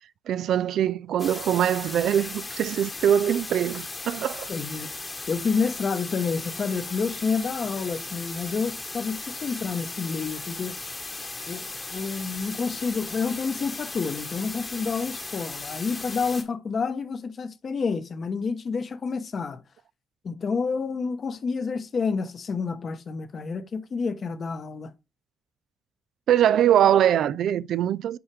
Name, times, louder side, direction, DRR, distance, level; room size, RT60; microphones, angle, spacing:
voice 1, 0.3-4.5 26.3-28.2, right 10 dB, 70° right, 0.3 m, -22 dB
sound 1, 1.2-16.4, left 3 dB, 25° left, 1.2 m, -37 dB
voice 2, 4.5-4.9 5.3-10.7 11.5-19.6 20.2-24.9, left 5 dB, 45° left, 1.0 m, -29 dB
7.1 x 4.8 x 3.3 m
cardioid pair, 90°, 0 cm